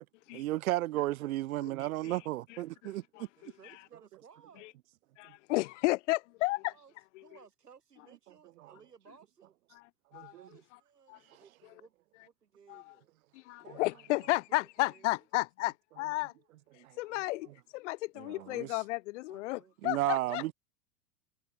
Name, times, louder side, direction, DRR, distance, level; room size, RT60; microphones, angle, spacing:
voice 1, 0.3-3.5 5.2-5.4 8.6-8.7 10.1-10.5 11.2-11.4 16.7-17.0 17.5-17.6 18.2-18.8 19.8-20.5, right 16 dB, 65° right, 0.7 m, -34 dB
voice 2, 3.4-4.8 6.5-6.9 7.2-9.5 10.1-11.9 12.2-13.2 13.6-15.3 17.1-17.6 19.3-19.7, right 6 dB, 85° right, 5.9 m, -60 dB
voice 3, 5.2-6.7 10.1-10.3 11.1-11.2 12.7-12.8 13.3-16.3 17.0-20.5, left 20 dB, 50° left, 0.6 m, -32 dB
hypercardioid pair, 95°, 46 cm